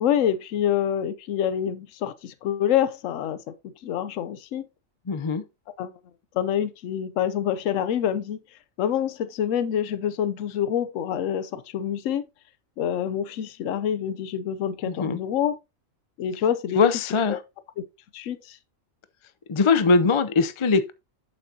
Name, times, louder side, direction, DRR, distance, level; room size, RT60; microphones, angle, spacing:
voice 1, 0.0-3.4 3.8-4.7 5.8-5.9 6.3-8.4 8.8-12.2 12.8-15.6 16.2-16.8 17.3-17.4 18.1-18.6, left 9 dB, 75° left, 1.0 m, -26 dB
voice 2, 5.1-5.4 14.8-15.2 16.7-17.4 19.5-20.9, left 4 dB, 40° left, 0.4 m, -21 dB
7.9 x 7.6 x 2.7 m
omnidirectional pair, 1.4 m